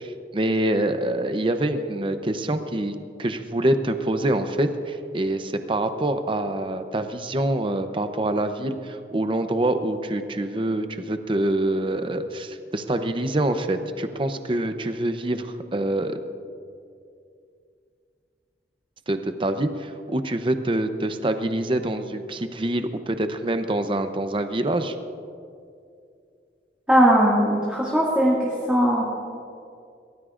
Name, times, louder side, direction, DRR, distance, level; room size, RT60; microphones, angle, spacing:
voice 1, 0.0-16.2 19.1-25.0, right 1 dB, 30° right, 8 dB, 0.7 m, -25 dB
voice 2, 26.9-29.0, equal, 5° right, -6 dB, 2.0 m, -19 dB
23.0 x 18.0 x 2.5 m, 2.4 s
head